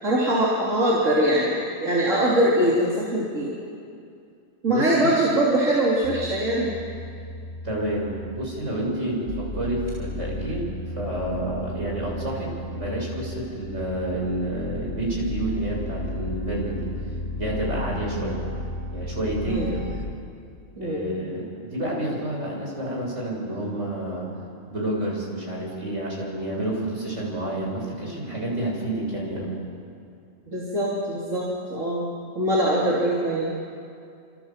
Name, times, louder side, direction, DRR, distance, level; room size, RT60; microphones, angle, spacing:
voice 1, 0.0-3.5 4.6-6.7 18.1-18.3 19.4-19.7 20.8-21.1 30.5-32.1 32.4-33.5, right 1 dB, 85° right, -5 dB, 3.9 m, -22 dB
voice 2, 4.7-5.2 7.6-16.9 17.4-18.4 18.9-19.9 20.8-24.3 24.7-29.6, right 1 dB, 70° right, -2 dB, 7.5 m, -29 dB
sound 1, 6.0-20.1, left 1 dB, 65° left, 2.4 m, -34 dB
28.5 x 27.0 x 7.5 m, 2.4 s
omnidirectional pair, 1.3 m